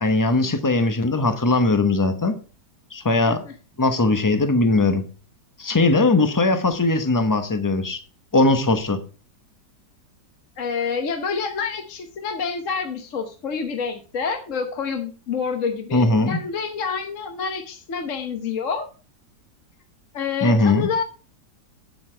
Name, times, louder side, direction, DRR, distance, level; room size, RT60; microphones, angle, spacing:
voice 1, 0.0-2.3 2.9-3.4 3.8-5.0 5.6-8.0 8.3-9.0 15.9-16.4 20.4-20.9, left 2 dB, 15° left, 0.6 m, -19 dB
voice 2, 3.2-3.5 10.6-18.9 20.1-21.0, left 5 dB, 50° left, 1.3 m, -28 dB
8.7 x 8.3 x 4.4 m
omnidirectional pair, 1.9 m